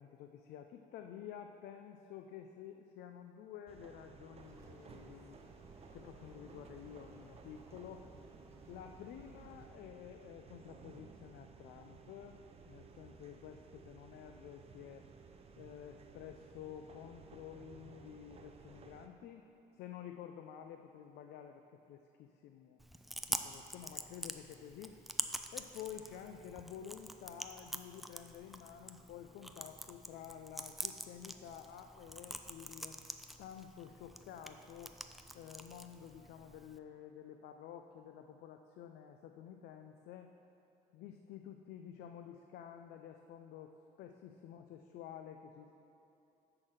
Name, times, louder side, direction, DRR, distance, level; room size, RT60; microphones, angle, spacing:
voice 1, 0.0-5.4 5.9-8.0 8.7-12.4 12.7-15.0 15.6-19.4 19.7-22.8 23.3-25.0 25.5-33.0 33.4-34.9 35.3-40.3 40.9-43.7 44.0-45.8, left 9 dB, 75° left, 6 dB, 0.4 m, -51 dB
sound 1, 3.7-19.1, right 5 dB, 35° right, 0.6 m, -57 dB
sound 2, 4.4-9.7, right 2 dB, 15° right, 1.2 m, -59 dB
Chewing mastication, 22.8-36.8, equal, ahead, 0.3 m, -46 dB
10.5 x 3.9 x 6.5 m, 2.8 s
cardioid pair, 110°, 17 cm